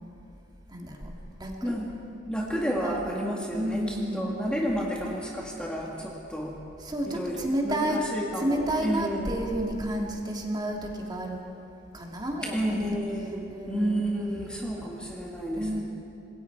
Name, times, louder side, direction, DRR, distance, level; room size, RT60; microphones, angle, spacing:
voice 1, 0.7-1.7 2.8-3.0 3.5-4.4 6.8-8.0 8.4-11.4 11.9-12.9 13.5-14.1 15.6-15.8, right 1 dB, 25° right, 0 dB, 2.6 m, -31 dB
voice 2, 2.3-3.8 4.1-6.5 7.1-9.4 12.5-15.8, equal, 5° left, -3 dB, 1.9 m, -31 dB
26.0 x 21.0 x 4.8 m, 2.8 s
head